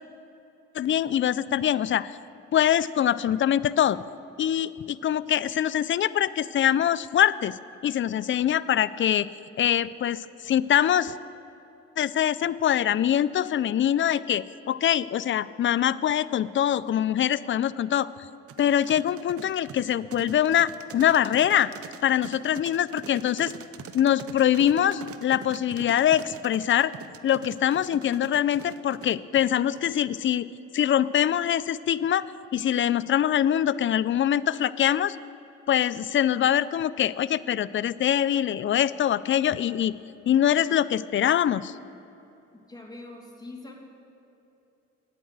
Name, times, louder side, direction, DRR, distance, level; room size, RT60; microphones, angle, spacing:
voice 1, 0.7-2.2 2.5-4.0 4.4-7.5 7.8-9.3 9.6-11.2 12.0-18.1 18.6-21.7 22.0-23.5 23.9-26.9 27.2-30.5 30.7-32.2 32.5-35.2 35.7-39.9 40.3-41.7, left 10 dB, 40° left, 17 dB, 0.4 m, -23 dB
sound 1, 18.5-29.9, right 8 dB, 50° right, 0.7 m, -43 dB
voice 2, 42.7-43.7, left 2 dB, 15° left, 0 dB, 2.1 m, -42 dB
9.8 x 8.7 x 8.0 m, 2.9 s
cardioid pair, 90°, 30 cm